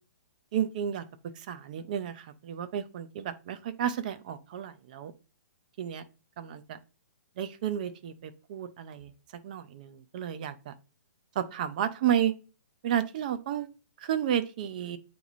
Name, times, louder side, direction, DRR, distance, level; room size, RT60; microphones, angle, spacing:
voice 1, 0.5-1.0 1.5-5.1 5.8-6.0 6.4-6.8 7.4-9.1 9.4-10.7 11.4-12.3 12.8-13.7 14.0-15.0, right 10 dB, 25° right, 12 dB, 0.4 m, -32 dB
8.2 x 3.0 x 4.0 m, 0.34 s
hypercardioid pair, 170°, 10 cm